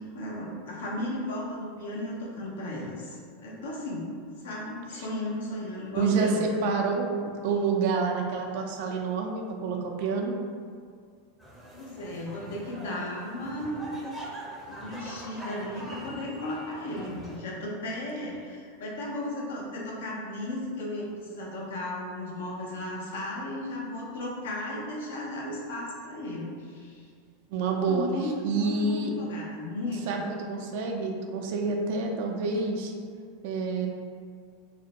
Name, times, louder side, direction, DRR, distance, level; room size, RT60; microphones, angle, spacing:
voice 1, 0.0-4.1 4.4-6.6 11.7-14.0 14.7-27.1 27.9-30.2, left 1 dB, 75° left, -3 dB, 0.6 m, -35 dB
voice 2, 5.9-7.1 7.4-10.3 27.5-28.1 28.4-29.1 30.1-32.9 33.4-33.9, right 4 dB, 65° right, 2 dB, 0.4 m, -28 dB
sound 1, 11.4-17.4, right 1 dB, 5° right, 0.6 m, -43 dB
2.4 x 2.1 x 2.8 m, 2.1 s
hypercardioid pair, 105°, 0 cm